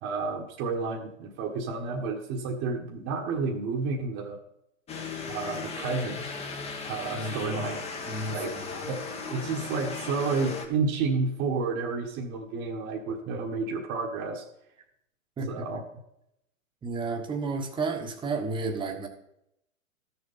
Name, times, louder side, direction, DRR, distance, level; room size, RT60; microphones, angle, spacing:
voice 1, 0.0-4.4 5.3-6.3 6.9-7.8 8.3-8.5 8.9-9.0 9.3-14.4 15.5-15.8, right 4 dB, 30° right, -1 dB, 1.4 m, -30 dB
sound 1, 4.9-10.7, left 4 dB, 15° left, 1.2 m, -37 dB
voice 2, 7.1-7.7 8.1-8.8 15.4-15.5 16.8-19.1, right 3 dB, 10° right, 4 dB, 1.3 m, -32 dB
12.5 x 7.0 x 5.5 m, 0.78 s
hypercardioid pair, 125°, 41 cm